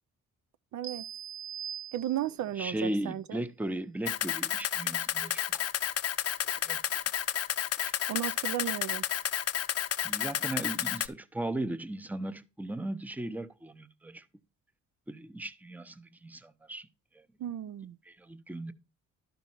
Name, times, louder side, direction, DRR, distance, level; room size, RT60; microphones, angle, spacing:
voice 1, 0.7-1.0 1.9-3.4 8.1-9.0 17.4-17.9, right 11 dB, 70° right, 0.6 m, -34 dB
sound 1, 0.8-2.6, right 9 dB, 55° right, 1.3 m, -42 dB
voice 2, 2.5-5.6 6.6-6.8 7.8-8.8 10.0-14.3 15.1-16.9 17.1-17.2 18.0-18.7, right 1 dB, 5° right, 0.7 m, -37 dB
Camera, 4.1-11.1, left 11 dB, 55° left, 0.7 m, -31 dB
12.0 x 5.3 x 4.5 m
cardioid pair, 90°, 30 cm